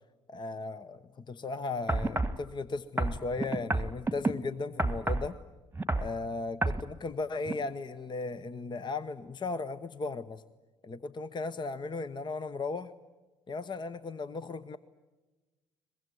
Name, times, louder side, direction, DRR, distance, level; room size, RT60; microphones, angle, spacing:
voice 1, 0.3-5.4 6.0-10.4 10.8-12.9 13.5-14.8, left 3 dB, 25° left, 14 dB, 0.9 m, -36 dB
sound 1, 1.9-2.4 3.0-4.3 4.8-5.3 5.7-6.1 6.6-6.8 7.5-7.6, right 2 dB, 10° right, 1.5 m, -29 dB
23.5 x 21.5 x 9.4 m, 1.2 s
figure-of-eight pair, 50°, 17 cm